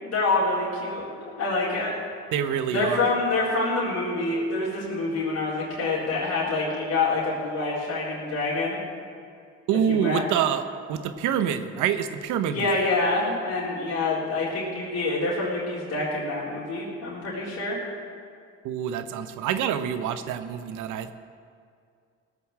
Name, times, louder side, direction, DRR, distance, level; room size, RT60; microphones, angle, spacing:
voice 1, 0.0-1.9 2.7-8.8 9.9-10.2 12.4-17.8, left 3 dB, 60° left, -8 dB, 4.0 m, -26 dB
voice 2, 2.3-3.1 9.7-12.7 18.6-21.1, right 8 dB, 85° right, 10 dB, 0.9 m, -26 dB
17.5 x 7.0 x 7.6 m, 2.3 s
supercardioid pair, 70°, 29 cm